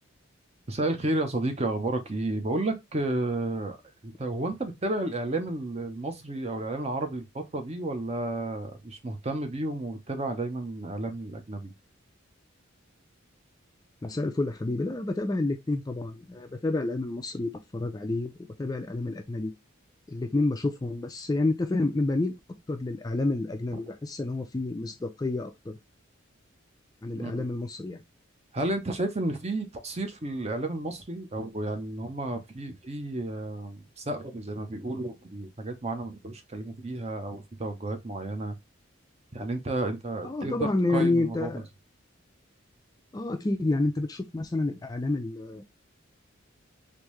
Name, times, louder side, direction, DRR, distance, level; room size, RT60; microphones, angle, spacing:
voice 1, 0.7-3.8 4.0-11.7 27.1-27.5 28.5-38.6 39.3-41.5, right 2 dB, 30° right, 0.6 m, -32 dB
voice 2, 14.0-18.3 18.6-19.5 20.1-22.3 22.7-25.7 27.0-28.0 40.2-41.7 43.1-45.6, left 2 dB, 20° left, 0.3 m, -29 dB
3.5 x 2.6 x 3.1 m
head